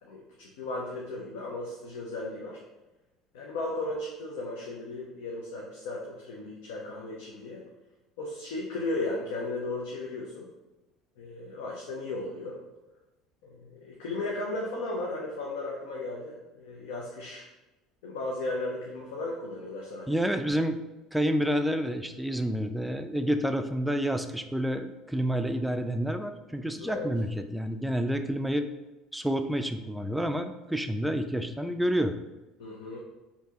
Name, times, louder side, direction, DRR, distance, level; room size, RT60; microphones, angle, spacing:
voice 1, 0.0-2.6 3.3-7.6 8.2-10.5 11.2-12.6 13.5-17.4 18.0-20.2 26.8-27.1 32.6-33.0, left 2 dB, 90° left, -3 dB, 0.6 m, -35 dB
voice 2, 20.1-20.8 21.1-28.7 29.1-32.1, equal, 5° right, 7 dB, 0.3 m, -29 dB
4.5 x 2.7 x 2.9 m, 1.1 s
supercardioid pair, 100°, 0 cm